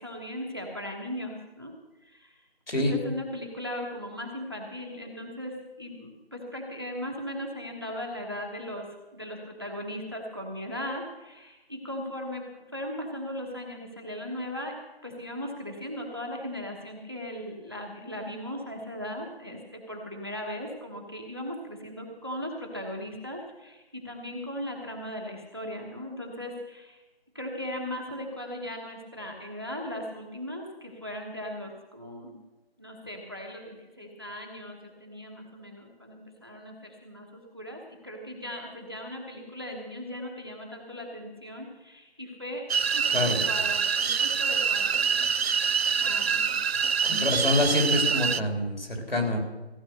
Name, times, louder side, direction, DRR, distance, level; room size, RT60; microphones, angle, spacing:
voice 1, 0.0-1.7 2.0-2.4 2.8-12.4 12.7-14.7 15.0-27.0 27.3-32.3 32.8-45.3 46.0-46.5, left 1 dB, 25° right, 1 dB, 1.2 m, -38 dB
sound 1, 42.7-48.4, right 6 dB, 75° right, 0.5 m, -25 dB
voice 2, 47.0-49.4, left 1 dB, 65° left, 1 dB, 3.8 m, -26 dB
15.5 x 9.4 x 6.5 m, 1.0 s
figure-of-eight pair, 180°, 31 cm